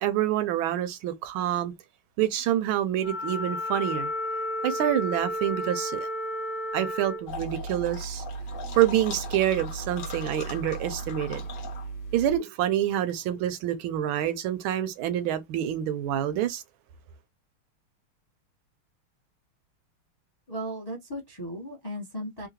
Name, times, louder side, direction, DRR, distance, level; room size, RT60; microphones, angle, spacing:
voice 1, 0.0-1.7 2.2-4.1 4.6-6.1 6.7-8.2 8.8-11.4 12.1-16.6, right 11 dB, 80° right, 1.4 m, -27 dB
Wind instrument woodwind instrument, 3.0-7.3, left 1 dB, 55° right, 0.5 m, -32 dB
sound 1, 7.3-12.4, right 1 dB, 55° left, 0.9 m, -36 dB
voice 2, 20.5-22.5, equal, 35° left, 0.3 m, -36 dB
3.7 x 2.1 x 2.8 m
omnidirectional pair, 2.3 m